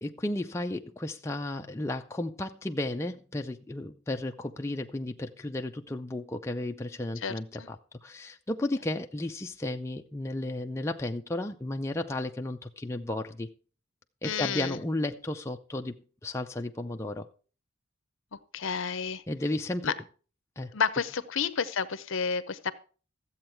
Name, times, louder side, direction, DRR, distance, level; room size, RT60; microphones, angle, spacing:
voice 1, 0.0-13.5 14.2-15.9 16.2-17.3 19.3-19.9 20.6-20.7, left 1 dB, 15° left, 0.4 m, -33 dB
voice 2, 7.2-7.7 14.2-14.8 18.5-19.2 19.8-19.9 20.7-22.7, left 6 dB, 60° left, 0.7 m, -30 dB
13.5 x 7.9 x 4.5 m
head